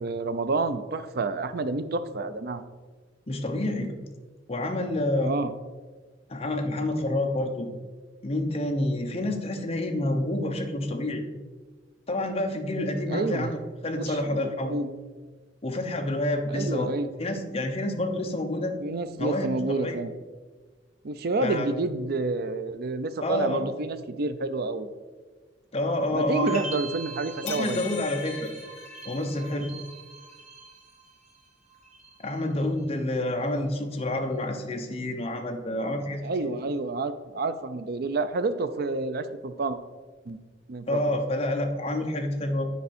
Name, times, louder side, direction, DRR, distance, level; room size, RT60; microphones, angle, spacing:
voice 1, 0.0-2.6 5.2-5.5 13.1-13.5 13.9-15.0 16.5-17.1 18.8-20.1 21.0-24.9 26.1-27.9 36.2-39.8 40.3-40.4 40.7-41.0, right 3 dB, 60° right, 11 dB, 0.5 m, -29 dB
voice 2, 3.3-3.9 4.5-5.4 6.3-7.7 8.2-11.2 12.1-13.6 13.8-14.8 15.6-16.9 17.2-18.7 19.2-20.0 21.4-21.7 23.2-23.6 25.7-26.6 27.4-28.5 29.0-29.7 32.2-36.5 40.9-42.6, left 1 dB, 35° left, 4 dB, 0.9 m, -28 dB
sound 1, 26.4-31.4 31.7-32.3, right 4 dB, 40° right, 1.2 m, -41 dB
sound 2, 27.5-29.6, left 8 dB, 80° left, 0.8 m, -40 dB
9.4 x 4.7 x 4.2 m, 1.4 s
head